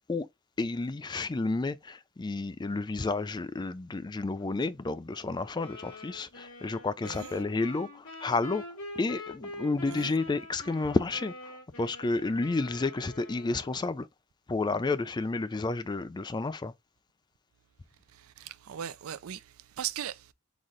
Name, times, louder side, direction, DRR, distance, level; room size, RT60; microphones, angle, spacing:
voice 1, 0.6-8.6 9.0-11.3 11.8-14.1 14.5-16.7, left 3 dB, 20° left, 0.4 m, -31 dB
sound 1, 5.6-13.9, left 2 dB, 75° left, 2.1 m, -45 dB
voice 2, 18.4-19.4 19.8-20.2, right 10 dB, 70° right, 0.4 m, -38 dB
4.1 x 3.7 x 3.1 m
head